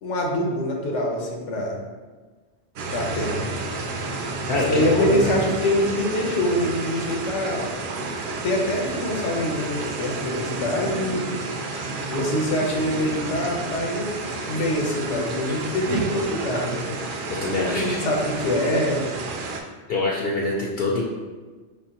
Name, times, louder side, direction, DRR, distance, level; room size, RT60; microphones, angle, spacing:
voice 1, 0.0-1.8 2.9-3.5 4.5-7.7 8.4-11.3 12.1-16.9 17.6-19.0, left 1 dB, 85° left, 0 dB, 1.1 m, -25 dB
sound 1, 2.8-19.6, right 3 dB, 60° right, 0.6 m, -30 dB
voice 2, 4.5-5.2 11.7-11.9 17.4-18.0 19.9-21.0, left 2 dB, 60° left, -3 dB, 0.7 m, -25 dB
4.4 x 3.1 x 2.8 m, 1.3 s
omnidirectional pair, 1.2 m